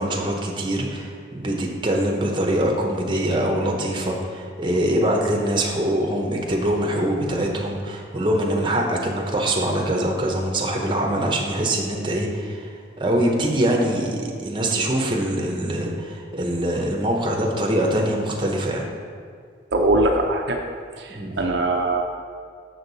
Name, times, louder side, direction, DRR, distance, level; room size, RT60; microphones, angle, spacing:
voice 1, 0.0-12.7 13.0-18.8 21.1-21.4, right 1 dB, 25° right, 0 dB, 0.8 m, -23 dB
voice 2, 19.7-20.6 21.0-22.0, right 2 dB, 65° right, 2 dB, 0.5 m, -21 dB
6.5 x 6.2 x 4.0 m, 2.1 s
head